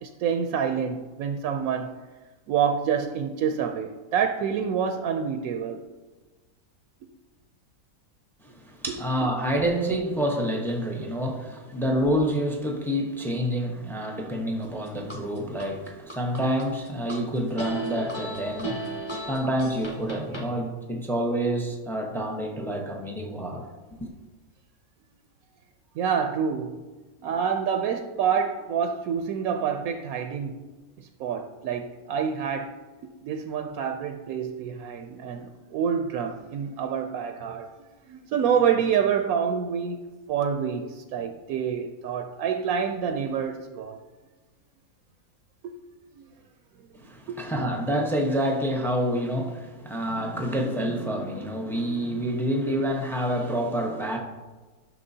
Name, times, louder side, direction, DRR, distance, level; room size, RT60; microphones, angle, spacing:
voice 1, 0.0-1.9 2.5-5.8 26.0-26.8 27.2-30.6 31.0-32.7 33.2-37.7 38.1-44.0 45.6-45.7 46.2-46.3 47.3-47.4, right 7 dB, 70° right, 0.9 m, -27 dB
voice 2, 8.4-18.9 19.3-24.1 46.9-54.2, equal, 5° left, 0.4 m, -28 dB
sound 1, 14.6-15.7 16.1-17.2 17.6-20.5, right 1 dB, 20° left, 0.9 m, -35 dB
12.0 x 6.2 x 2.7 m
omnidirectional pair, 1.8 m